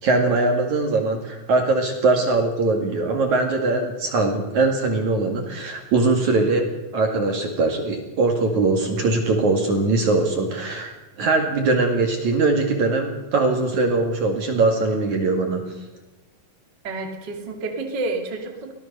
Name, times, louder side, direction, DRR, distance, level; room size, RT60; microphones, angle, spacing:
voice 1, 0.0-15.6, right 3 dB, 50° right, 3 dB, 3.1 m, -21 dB
voice 2, 16.8-18.7, right 3 dB, 30° right, 3 dB, 2.4 m, -29 dB
24.0 x 17.0 x 6.8 m, 1.0 s
omnidirectional pair, 5.0 m